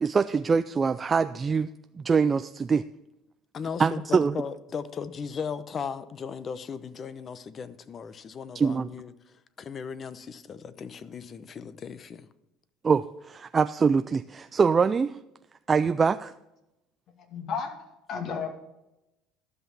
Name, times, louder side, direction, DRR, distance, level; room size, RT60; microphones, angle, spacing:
voice 1, 0.0-2.8 3.8-4.4 8.5-8.9 12.8-15.2 15.7-16.3, right 5 dB, 30° right, 11 dB, 0.3 m, -24 dB
voice 2, 3.5-9.1 9.6-12.3, left 6 dB, 40° left, 15 dB, 0.8 m, -37 dB
voice 3, 17.2-17.7 18.1-18.6, left 6 dB, 55° left, 5 dB, 2.3 m, -32 dB
12.5 x 6.0 x 7.0 m, 0.92 s
supercardioid pair, 100°, 0 cm